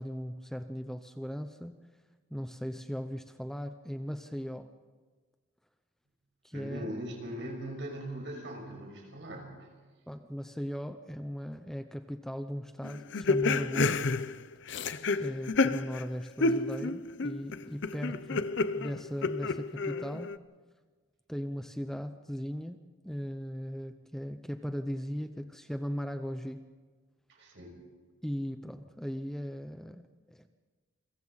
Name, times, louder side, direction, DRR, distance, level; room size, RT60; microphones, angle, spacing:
voice 1, 0.0-1.8 2.3-4.7 6.4-6.9 10.1-14.1 15.2-18.5 18.7-20.3 21.3-26.6 28.2-30.5, equal, ahead, 8 dB, 0.7 m, -38 dB
voice 2, 6.5-9.7 27.3-27.8, right 1 dB, 60° right, 1 dB, 6.3 m, -40 dB
sound 1, 12.8-16.1 16.4-20.4, left 3 dB, 60° left, 0.7 m, -30 dB
29.0 x 23.0 x 4.1 m, 1.4 s
head